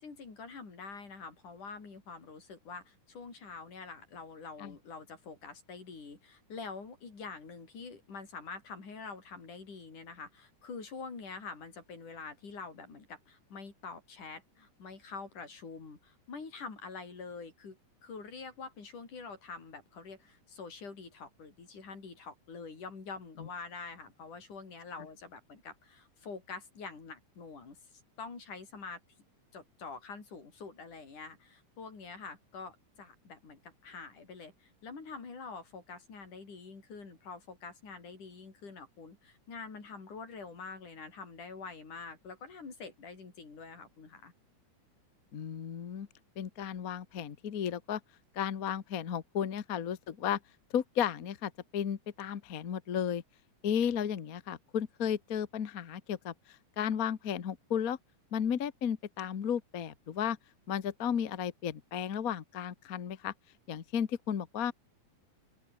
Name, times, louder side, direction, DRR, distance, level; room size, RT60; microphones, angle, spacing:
voice 1, 0.0-29.0 29.5-44.3, left 4 dB, 80° left, 7.1 m, -46 dB
voice 2, 45.3-46.1 46.4-48.0 48.3-50.4 50.7-53.2 53.6-58.0 58.3-60.4 60.7-63.3 63.7-64.7, left 8 dB, 50° left, 1.0 m, -34 dB
open air
omnidirectional pair, 3.5 m